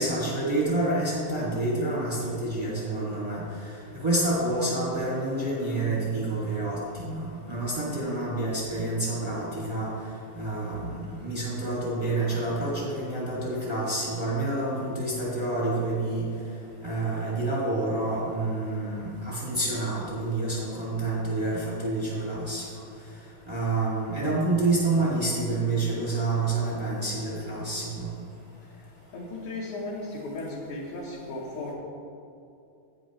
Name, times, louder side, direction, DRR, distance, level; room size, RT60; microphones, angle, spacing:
voice 1, 0.0-3.4 4.0-9.9 10.3-10.9 11.2-16.2 16.8-22.6 23.5-28.1, right 2 dB, 20° right, -7 dB, 0.6 m, -28 dB
voice 2, 29.1-31.7, left 2 dB, 65° left, -6 dB, 2.1 m, -36 dB
11.0 x 8.8 x 3.1 m, 2.6 s
omnidirectional pair, 4.5 m